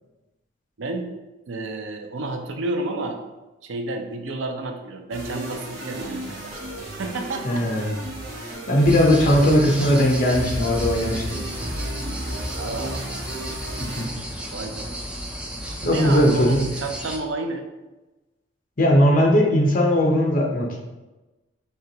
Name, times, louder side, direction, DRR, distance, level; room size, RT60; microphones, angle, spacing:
voice 1, 0.8-1.1 1.5-3.2 3.6-7.6 12.6-13.1 14.5-15.0 15.8-17.6, right 2 dB, 70° right, 5 dB, 0.5 m, -31 dB
sound 1, 5.1-14.8, right 1 dB, 50° right, 1.3 m, -35 dB
voice 2, 7.4-7.9 8.7-11.4 13.8-14.1 15.8-16.6 18.8-20.8, equal, 45° left, -1 dB, 0.7 m, -19 dB
sound 2, 8.8-17.2, equal, 5° right, 0.3 m, -32 dB
4.5 x 2.9 x 2.8 m, 1.1 s
head